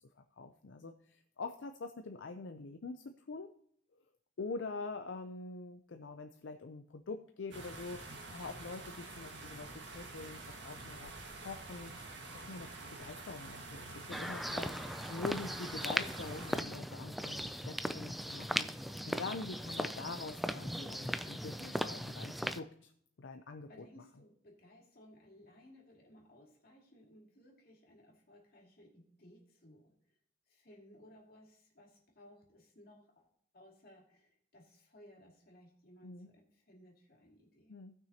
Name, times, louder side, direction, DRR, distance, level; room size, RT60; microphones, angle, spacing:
voice 1, 0.4-3.5 4.4-8.0 8.3-11.9 12.3-14.8 15.1-18.7 19.0-22.9 23.2-23.8 36.0-36.3 37.7-37.9, left 3 dB, 75° left, 7 dB, 0.5 m, -45 dB
sound 1, 7.5-16.6, right 2 dB, 65° right, 1.6 m, -48 dB
sound 2, 14.1-22.6, equal, ahead, 0.3 m, -38 dB
voice 2, 17.4-17.7 23.7-29.9 30.5-33.3 33.5-37.8, left 1 dB, 55° left, -1 dB, 2.5 m, -60 dB
17.5 x 6.1 x 2.8 m, 0.65 s
head